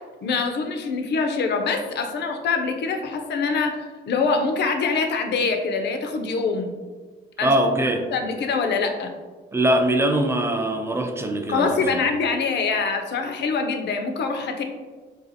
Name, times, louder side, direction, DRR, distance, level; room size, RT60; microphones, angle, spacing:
voice 1, 0.2-6.7 7.4-7.5 8.1-9.1 11.5-14.6, left 4 dB, 60° left, 5 dB, 0.5 m, -24 dB
voice 2, 7.4-8.1 9.5-12.0, right 1 dB, 15° right, 4 dB, 0.3 m, -22 dB
4.0 x 2.4 x 2.6 m, 1.4 s
cardioid pair, 90°, 20 cm